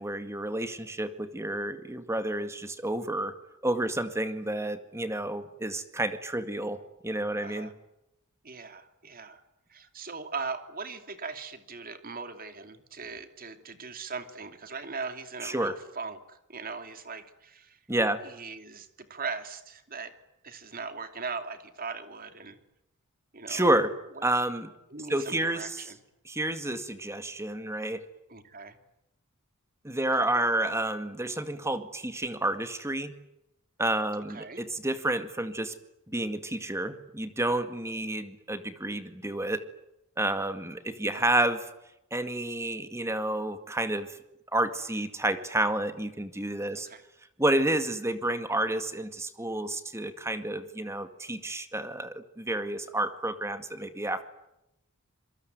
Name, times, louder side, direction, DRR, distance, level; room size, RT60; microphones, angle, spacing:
voice 1, 0.0-3.3 3.6-6.8 7.0-7.7 15.4-15.7 17.9-18.2 23.5-23.9 24.2-24.7 25.1-25.8 26.3-28.0 29.8-33.1 33.8-35.7 36.1-39.6 40.2-41.7 42.1-44.2 44.5-46.9 47.4-54.2, right 1 dB, 15° right, 9 dB, 2.0 m, -30 dB
voice 2, 7.4-7.7 8.4-9.4 9.7-17.8 18.2-20.1 20.4-22.6 23.3-23.7 24.1-24.2 24.9-26.0 28.3-28.8 34.3-34.6 41.1-41.3 46.7-47.0, right 4 dB, 40° right, 8 dB, 2.9 m, -39 dB
27.0 x 23.0 x 9.4 m, 0.86 s
head